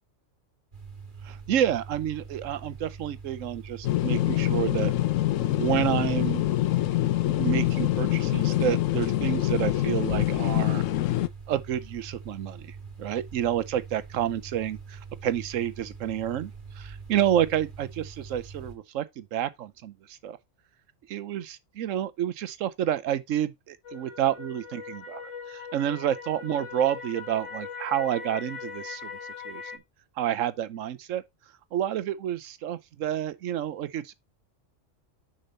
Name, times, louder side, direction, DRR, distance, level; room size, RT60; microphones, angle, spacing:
sound 1, 0.7-18.8, right 5 dB, 40° right, 2.1 m, -43 dB
voice 1, 1.2-4.9 5.6-6.4 7.4-10.8 11.5-16.5 16.8-20.4 21.1-29.1 29.4-29.6 30.2-31.2 31.7-34.1, right 10 dB, 85° right, 1.1 m, -29 dB
sound 2, 3.8-11.3, left 15 dB, 90° left, 1.0 m, -25 dB
sound 3, 23.8-29.8, left 5 dB, 70° left, 1.4 m, -40 dB
6.7 x 5.5 x 3.9 m
omnidirectional pair, 1.3 m